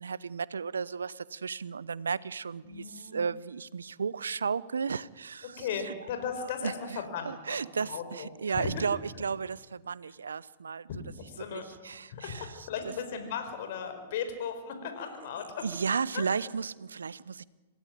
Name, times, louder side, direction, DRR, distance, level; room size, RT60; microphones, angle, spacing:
voice 1, 0.0-5.9 6.6-6.7 7.3-10.9 11.5-12.5 15.6-17.4, right 5 dB, 80° right, 0.8 m, -34 dB
voice 2, 2.6-3.2 5.4-8.8 10.9-11.8 12.1-15.6 16.1-16.2, left 6 dB, 55° left, 5.2 m, -37 dB
26.5 x 17.5 x 9.3 m
figure-of-eight pair, 105°, 0 cm